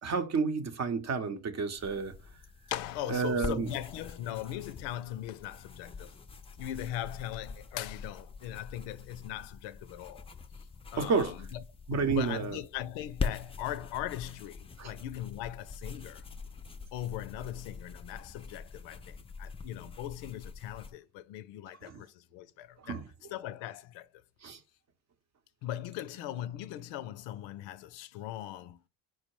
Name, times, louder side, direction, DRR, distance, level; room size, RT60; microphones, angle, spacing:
voice 1, 0.0-2.1 3.1-3.7 11.0-11.3 11.9-12.6 14.8-14.9 21.9-22.0 22.8-23.1 24.4-24.6, right 5 dB, 40° right, 0.7 m, -30 dB
sound 1, 1.8-20.9, left 4 dB, 15° left, 0.4 m, -44 dB
voice 2, 2.7-6.2 6.6-10.3 10.9-11.6 11.9-16.2 16.9-23.0 23.3-24.1 25.6-28.8, left 12 dB, 80° left, 0.5 m, -39 dB
4.6 x 2.0 x 4.6 m
supercardioid pair, 75°, 44 cm